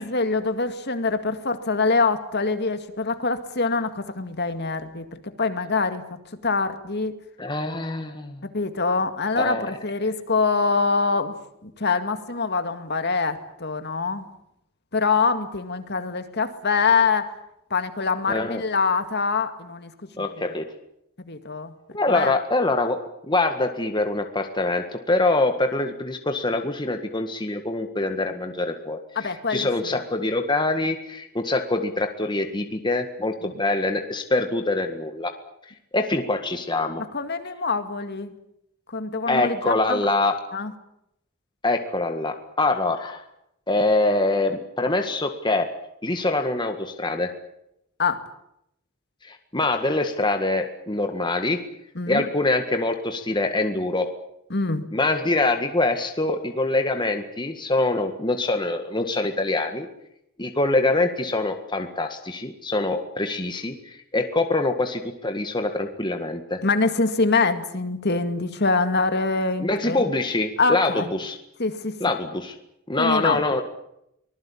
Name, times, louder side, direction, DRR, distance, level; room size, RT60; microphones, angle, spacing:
voice 1, 0.0-6.0 6.4-7.1 8.5-11.3 11.6-14.2 14.9-17.3 17.7-19.9 21.3-21.7 22.1-22.3 29.2-29.7 33.4-33.5 37.1-38.3 38.9-40.0 40.5-40.7 48.0-48.2 52.0-52.2 54.5-54.9 66.6-70.1 70.6-71.1 71.6-72.0 73.0-73.4, left 4 dB, 50° left, 9 dB, 2.1 m, -24 dB
voice 2, 7.4-8.5 9.4-9.7 18.3-18.6 20.2-20.7 21.9-35.3 35.9-37.0 39.3-40.4 41.6-43.2 43.7-45.7 46.0-47.3 49.2-51.6 52.1-54.1 54.9-59.9 60.4-66.6 69.6-71.4 72.0-72.5 72.9-73.6, left 2 dB, 20° left, 6 dB, 1.8 m, -24 dB
24.5 x 20.0 x 8.6 m, 0.78 s
head